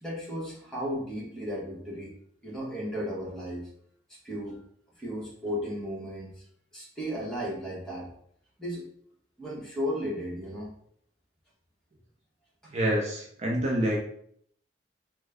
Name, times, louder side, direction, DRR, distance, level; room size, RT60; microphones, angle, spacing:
voice 1, 0.0-2.1 2.4-3.7 4.2-4.6 5.0-6.4 6.7-8.1 8.6-8.9 9.4-10.7, equal, 5° left, -6 dB, 1.1 m, -34 dB
voice 2, 12.7-14.0, equal, 40° right, -2 dB, 0.6 m, -27 dB
3.1 x 2.2 x 3.5 m, 0.65 s
head